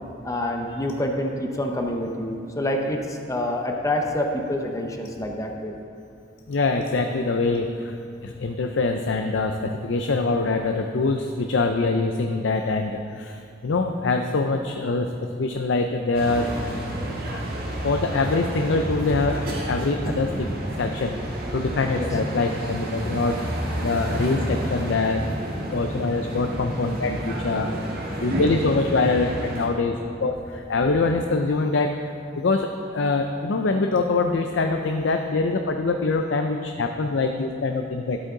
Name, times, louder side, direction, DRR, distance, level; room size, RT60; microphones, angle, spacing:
voice 1, 0.2-5.7 21.9-22.1, left 1 dB, 15° left, 2 dB, 0.7 m, -27 dB
voice 2, 6.5-7.9 8.2-16.5 17.3-17.4 17.8-20.5 20.8-21.2 21.5-23.4 23.8-25.2 25.7-27.7 28.2-29.9 30.2-38.2, left 3 dB, 75° left, 5 dB, 0.5 m, -24 dB
Tower Bridge, 16.1-29.7, equal, 50° right, 1.8 m, -30 dB
12.0 x 8.4 x 3.8 m, 2.6 s
head